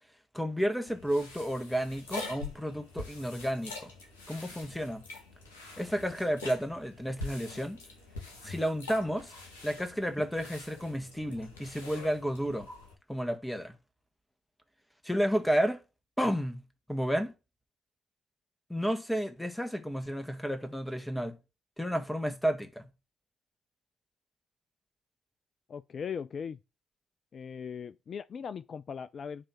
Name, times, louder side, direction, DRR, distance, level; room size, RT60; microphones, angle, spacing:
voice 1, 0.3-3.9 4.3-5.0 5.8-7.8 8.4-9.3 9.6-12.7 13.1-13.7 15.0-15.8 16.2-16.6 16.9-17.3 18.7-21.4 21.8-22.9, equal, 5° left, 1.7 m, -31 dB
sound 1, 0.9-12.9, left 3 dB, 80° left, 1.9 m, -45 dB
voice 2, 25.7-26.6 27.3-29.5, left 7 dB, 50° left, 0.3 m, -39 dB
9.0 x 3.3 x 6.2 m
figure-of-eight pair, 40°, 0 cm